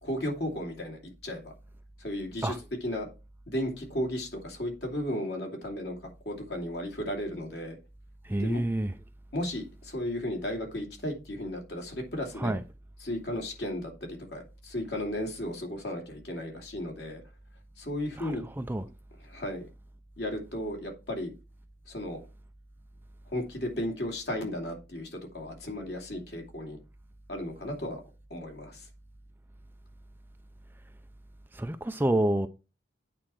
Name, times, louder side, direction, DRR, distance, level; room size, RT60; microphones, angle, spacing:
voice 1, 0.0-1.5 2.0-2.5 2.8-3.1 3.5-6.0 6.2-7.8 8.4-8.6 9.3-12.6 13.0-17.2 17.8-18.4 19.2-19.6 20.2-21.3 21.9-22.2 23.3-26.8 27.3-28.0 28.3-28.9, left 1 dB, 60° left, 2.6 m, -34 dB
voice 2, 8.2-8.9 12.4-12.6 18.2-18.9 31.5-32.5, right 1 dB, 10° right, 0.4 m, -28 dB
8.7 x 4.3 x 6.2 m
head